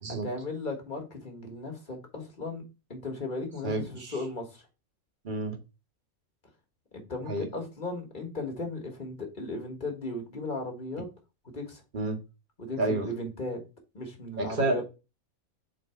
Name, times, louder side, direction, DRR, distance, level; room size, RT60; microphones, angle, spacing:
voice 1, 0.1-2.6 2.9-4.6 7.1-11.1 11.5-11.8 12.6-13.6 13.9-14.8, left 2 dB, 35° left, 1.6 m, -36 dB
voice 2, 3.6-4.1 5.2-5.6 7.3-7.5 11.9-12.2 12.8-13.1 14.4-14.8, right 2 dB, 35° right, 1.3 m, -29 dB
4.4 x 3.9 x 5.6 m
omnidirectional pair, 1.5 m